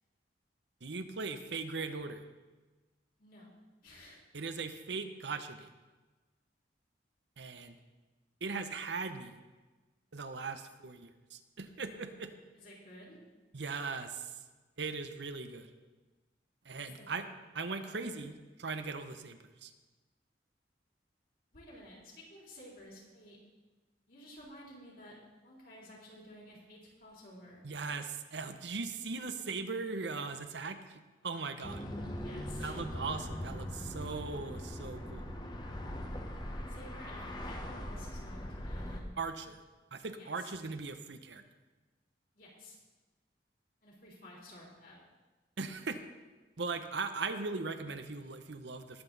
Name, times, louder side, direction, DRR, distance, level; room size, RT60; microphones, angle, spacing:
voice 1, 0.8-2.2 4.3-5.7 7.4-7.8 8.4-9.3 10.1-12.3 13.5-14.4 14.8-15.7 16.6-17.3 17.5-19.7 27.6-31.8 32.6-35.3 39.2-39.6 39.9-41.4 45.6-46.0 46.6-49.0, right 4 dB, 70° right, 9 dB, 0.9 m, -39 dB
voice 2, 3.2-3.5 3.8-4.2 12.5-13.2 16.8-17.1 17.8-18.1 21.5-23.4 24.1-25.1 25.4-27.6 32.2-32.8 36.7-39.0 40.2-40.5 42.3-42.8 43.8-45.0, left 1 dB, 50° left, -3 dB, 3.8 m, -53 dB
sound 1, 31.6-39.0, equal, 25° left, 1.1 m, -41 dB
20.0 x 8.0 x 4.0 m, 1.3 s
head